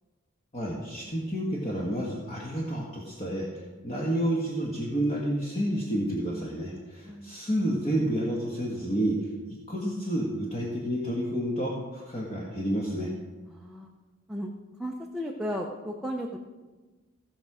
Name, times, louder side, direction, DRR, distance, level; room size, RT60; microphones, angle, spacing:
voice 1, 0.5-9.3 9.7-13.1, right 1 dB, 30° left, -4 dB, 1.5 m, -30 dB
voice 2, 13.5-13.9 14.3-14.5 14.8-16.4, equal, ahead, -1 dB, 0.7 m, -34 dB
16.5 x 6.1 x 4.9 m, 1.3 s
head